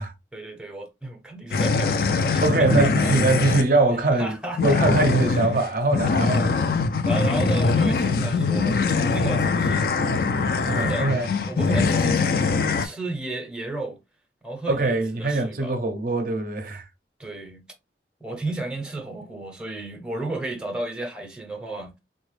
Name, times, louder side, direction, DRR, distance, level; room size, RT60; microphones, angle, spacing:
voice 1, 0.3-3.1 3.9-4.8 5.3-5.5 6.2-10.1 10.6-14.0 14.4-15.8 17.2-17.7 18.2-21.9, right 2 dB, 5° right, 0.6 m, -33 dB
sound 1, 1.5-3.7 4.6-12.9, left 4 dB, 55° left, 0.4 m, -22 dB
voice 2, 2.4-4.4 4.6-6.6 10.6-11.3 14.7-16.8, right 2 dB, 50° right, 0.5 m, -22 dB
3.8 x 2.1 x 3.1 m
head